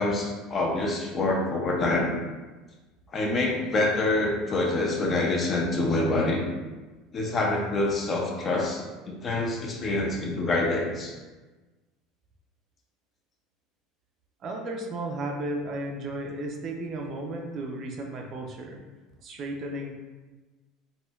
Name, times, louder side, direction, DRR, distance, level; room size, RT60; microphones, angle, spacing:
voice 1, 0.0-2.1 3.1-6.4 7.1-11.1, left 2 dB, 25° left, 0 dB, 0.5 m, -26 dB
voice 2, 14.4-18.8 19.2-19.9, right 1 dB, 40° right, 1 dB, 0.4 m, -34 dB
4.2 x 2.1 x 2.2 m, 1.2 s
cardioid pair, 150°, 0 cm